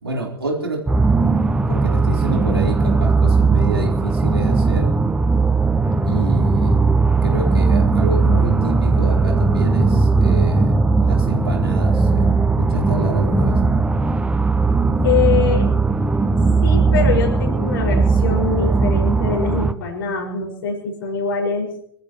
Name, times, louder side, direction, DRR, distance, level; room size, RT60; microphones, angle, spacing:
voice 1, 0.0-0.8 1.7-4.9 6.0-6.8 7.2-12.2 12.6-13.6, right 2 dB, 80° right, -1 dB, 4.2 m, -27 dB
sound 1, 0.9-19.7, right 3 dB, 10° right, 0.7 m, -17 dB
voice 2, 15.0-15.7 16.6-21.7, left 6 dB, 65° left, 1 dB, 5.7 m, -23 dB
26.5 x 14.0 x 3.1 m, 0.69 s
figure-of-eight pair, 85°, 12 cm